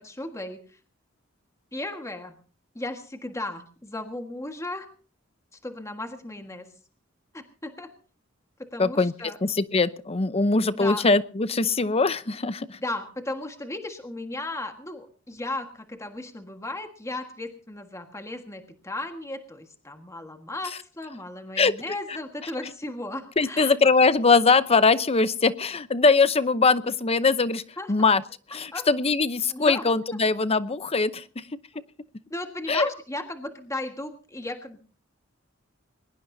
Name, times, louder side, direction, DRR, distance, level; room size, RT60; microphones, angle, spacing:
voice 1, 0.0-0.6 1.7-2.3 2.7-4.9 5.6-6.7 7.3-7.9 8.7-9.4 10.7-11.0 12.8-23.7 27.8-27.9 28.7-28.9 29.5-29.8 31.7-31.8 32.3-34.8, left 2 dB, 15° left, 5 dB, 1.6 m, -35 dB
voice 2, 8.8-9.1 9.4-12.8 21.6-22.2 23.4-27.6 27.9-28.2 28.5-31.6 32.7-32.9, left 4 dB, 30° left, 15 dB, 0.7 m, -22 dB
22.0 x 20.0 x 2.7 m, 0.40 s
head